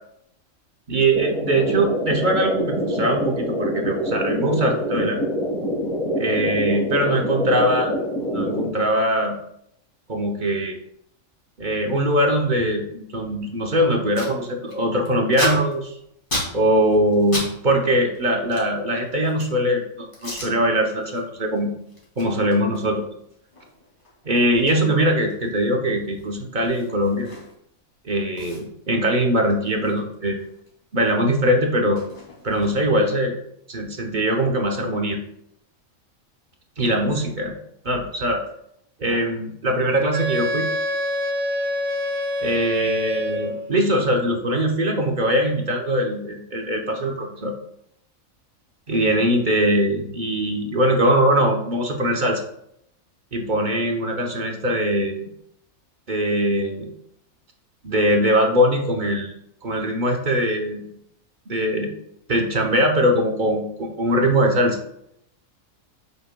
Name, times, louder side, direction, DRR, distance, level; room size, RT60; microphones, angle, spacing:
voice 1, 0.9-5.2 6.2-7.9 8.3-9.4 10.1-10.8 11.6-15.9 16.5-21.7 22.2-23.1 24.2-27.3 28.0-30.4 30.9-32.0 32.4-33.3 33.7-35.2 36.8-37.5 37.8-38.4 39.0-40.7 42.4-47.5 48.9-52.4 53.3-55.3 56.1-56.9 57.8-59.3 59.6-60.9 61.5-61.9 62.3-64.8, equal, 40° right, 2 dB, 0.9 m, -21 dB
sound 1, 1.1-8.7, equal, 85° left, 2.1 m, -25 dB
Packing tape duct tape, 13.6-13.7 13.9-14.3 14.7-17.5 17.8-19.6 20.1-20.5 21.0-21.2 21.5-27.8 28.0-28.1 28.4-30.7 31.0-33.0, left 1 dB, 40° left, 2.3 m, -34 dB
Wind instrument woodwind instrument, 40.1-43.7, left 1 dB, 80° right, 1.3 m, -26 dB
7.7 x 6.4 x 2.2 m, 0.75 s
omnidirectional pair, 1.4 m